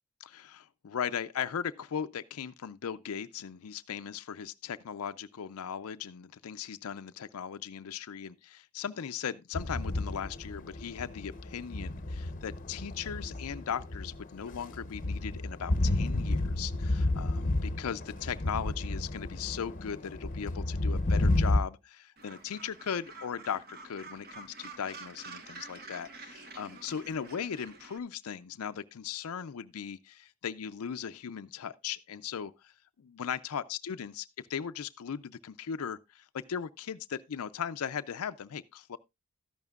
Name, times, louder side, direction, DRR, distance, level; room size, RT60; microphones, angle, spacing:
voice 1, 0.2-32.7 33.0-39.0, left 7 dB, 75° left, 0.5 m, -38 dB
sound 1, 9.5-21.6, left 2 dB, 35° left, 0.8 m, -31 dB
Gull seagull, 22.2-28.0, right 3 dB, 45° right, 1.2 m, -48 dB
13.0 x 10.5 x 2.3 m
head